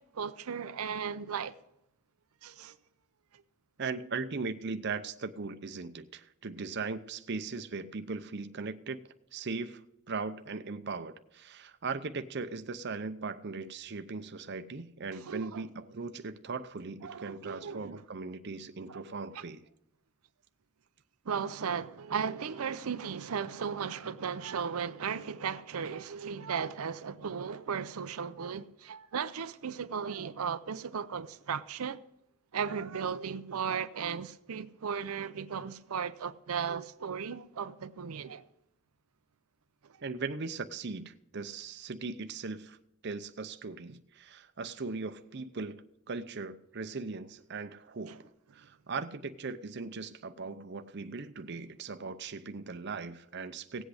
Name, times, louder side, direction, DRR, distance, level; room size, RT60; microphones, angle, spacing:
voice 1, 0.0-1.5 2.4-2.8 15.3-15.6 17.0-18.0 18.9-19.1 19.3-19.4 21.3-32.0 32.5-38.4 39.8-40.0 48.1-48.2, right 6 dB, 90° right, 0.6 m, -36 dB
voice 2, 3.8-9.0 9.3-9.8 10.1-19.6 40.0-42.8 43.0-45.8 46.1-48.3 48.5-53.8, right 4 dB, 50° right, 0.6 m, -39 dB
17.0 x 8.2 x 4.9 m
head